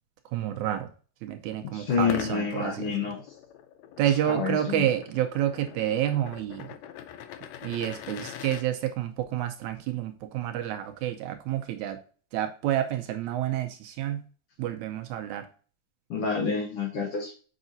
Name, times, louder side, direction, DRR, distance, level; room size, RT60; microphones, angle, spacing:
voice 1, 0.3-0.9 1.2-3.1 4.0-6.7 7.6-12.0 12.3-14.3 14.6-15.5, right 12 dB, 75° right, 1.9 m, -29 dB
voice 2, 1.7-3.3 4.3-4.9 16.1-17.3, left 5 dB, 60° left, 1.7 m, -28 dB
sound 1, 2.0-8.6, left 10 dB, 85° left, 1.5 m, -42 dB
7.2 x 5.3 x 2.6 m
omnidirectional pair, 3.6 m